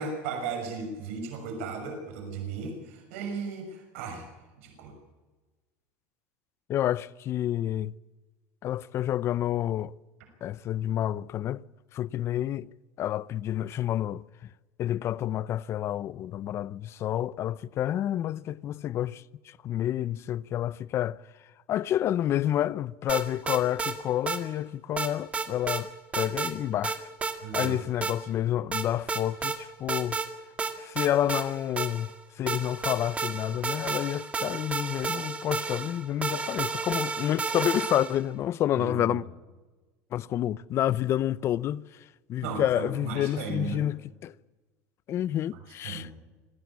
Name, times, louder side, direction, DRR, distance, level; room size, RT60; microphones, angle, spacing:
voice 1, 0.0-4.2 4.6-4.9 27.4-27.8 38.8-39.2 42.4-43.8 45.8-46.1, right 5 dB, 80° right, 6.0 m, -35 dB
voice 2, 6.7-7.9 8.6-9.9 10.4-11.6 11.9-12.7 13.0-14.2 14.8-21.2 21.7-27.1 27.5-30.2 30.8-39.2 40.1-41.8 42.3-44.3 45.1-46.1, left 12 dB, 40° left, 0.6 m, -29 dB
sound 1, 23.1-24.0 24.3-24.4 25.0-25.8 26.1-26.5 26.8-27.7 28.0-28.2 28.7-29.6 29.9-30.3 30.6-32.1 32.5-38.2, right 4 dB, 20° right, 1.9 m, -31 dB
25.5 x 15.5 x 8.5 m
supercardioid pair, 130°, 7 cm